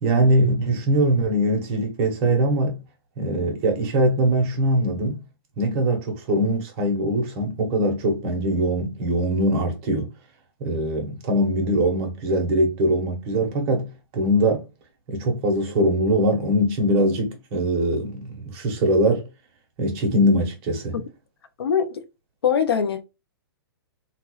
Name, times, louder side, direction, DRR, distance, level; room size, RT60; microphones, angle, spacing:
voice 1, 0.0-2.8 3.2-5.2 5.6-10.1 10.6-13.9 14.1-14.6 15.1-19.2 19.8-21.0, right 1 dB, 35° right, 1.1 m, -22 dB
voice 2, 21.6-22.0 22.4-23.0, left 7 dB, 80° left, 0.7 m, -22 dB
3.1 x 2.4 x 3.0 m
hypercardioid pair, 145°, 13 cm